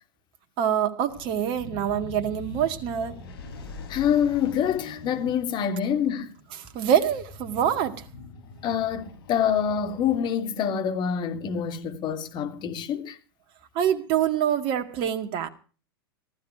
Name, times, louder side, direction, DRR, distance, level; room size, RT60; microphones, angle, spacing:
voice 1, 0.6-3.2 6.6-8.1 13.7-15.5, right 9 dB, 45° right, 2.0 m, -25 dB
sound 1, 1.1-10.6, left 4 dB, 65° left, 7.7 m, -43 dB
voice 2, 3.9-6.3 8.6-13.2, left 8 dB, 35° left, 3.2 m, -26 dB
15.0 x 14.5 x 4.9 m
hypercardioid pair, 105°, 13 cm